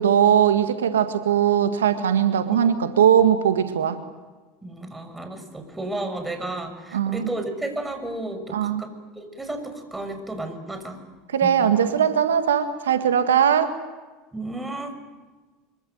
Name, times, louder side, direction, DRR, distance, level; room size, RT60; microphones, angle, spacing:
voice 1, 0.0-4.0 6.9-7.3 8.5-8.8 11.3-13.7, right 9 dB, 85° right, 9 dB, 1.8 m, -20 dB
voice 2, 4.6-11.0 11.4-11.5 14.3-14.9, right 2 dB, 10° right, 7 dB, 6.2 m, -33 dB
25.5 x 24.0 x 9.3 m, 1.3 s
hypercardioid pair, 80°, 0 cm